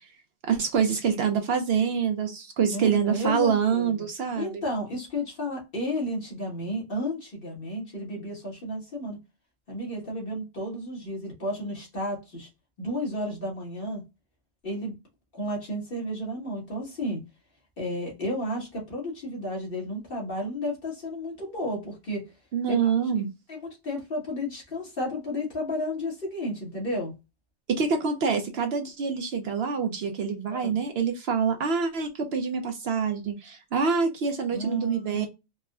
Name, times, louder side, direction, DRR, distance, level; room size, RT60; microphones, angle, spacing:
voice 1, 0.5-4.6 22.5-23.3 27.7-35.3, right 6 dB, 65° right, 0.7 m, -26 dB
voice 2, 2.7-4.0 4.4-9.2 9.7-12.5 12.8-14.0 14.6-14.9 15.3-17.2 17.8-22.3 22.8-22.9 23.5-27.1 30.5-30.8 34.5-35.3, left 1 dB, 50° left, 1.6 m, -32 dB
4.2 x 2.1 x 2.3 m
omnidirectional pair, 1.3 m